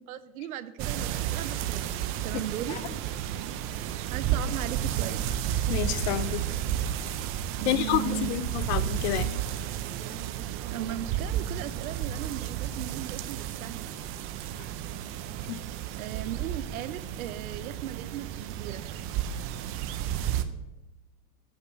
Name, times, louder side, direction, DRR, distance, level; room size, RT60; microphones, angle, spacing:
voice 1, 0.1-1.9 2.2-2.8 4.1-5.3 7.6-8.4 10.7-13.9 16.0-18.8, right 11 dB, 70° right, 0.8 m, -37 dB
sound 1, 0.8-20.4, right 10 dB, 30° right, 0.5 m, -32 dB
voice 2, 5.7-6.4 7.7-9.3 15.5-15.6, left 13 dB, 50° left, 0.5 m, -29 dB
8.1 x 5.2 x 6.2 m
hypercardioid pair, 115°, 45 cm